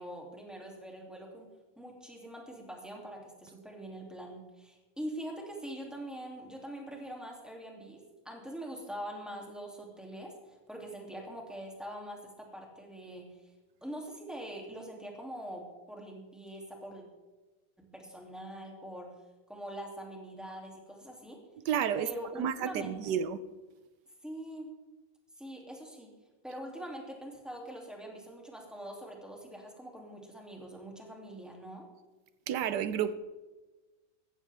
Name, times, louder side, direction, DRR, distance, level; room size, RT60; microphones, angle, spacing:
voice 1, 0.0-1.5 1.8-13.3 13.8-17.0 17.8-19.1 19.5-21.4 22.0-23.1 24.2-24.7 25.4-26.1 26.4-31.9, right 1 dB, ahead, 0 dB, 2.7 m, -43 dB
voice 2, 21.7-23.4 32.5-33.1, right 8 dB, 70° right, 14 dB, 1.2 m, -31 dB
16.0 x 14.0 x 3.6 m, 1.2 s
omnidirectional pair, 2.0 m